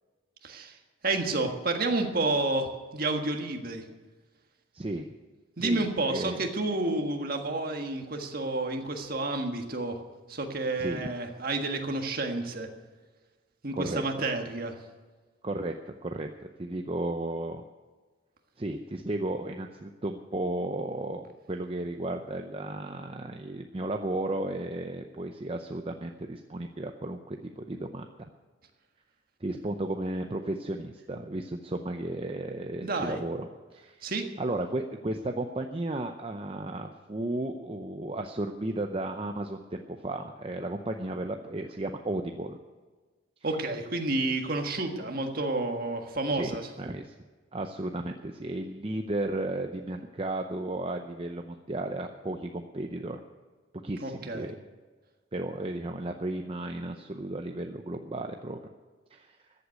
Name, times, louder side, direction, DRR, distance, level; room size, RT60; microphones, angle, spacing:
voice 1, 0.4-0.8 1.0-3.8 5.6-10.0 10.3-12.7 13.6-14.7 32.8-33.2 34.0-34.2 43.4-46.7 54.0-54.5, right 2 dB, 45° right, 4 dB, 1.6 m, -30 dB
voice 2, 4.7-5.1 5.6-6.4 10.8-11.0 13.7-14.0 15.4-17.6 18.6-28.1 29.4-34.1 34.4-42.6 46.3-46.5 46.8-47.2 47.5-53.2 53.7-54.6 55.3-58.6 59.1-59.4, right 2 dB, 30° right, 5 dB, 0.6 m, -34 dB
14.5 x 8.1 x 9.4 m, 1.4 s
head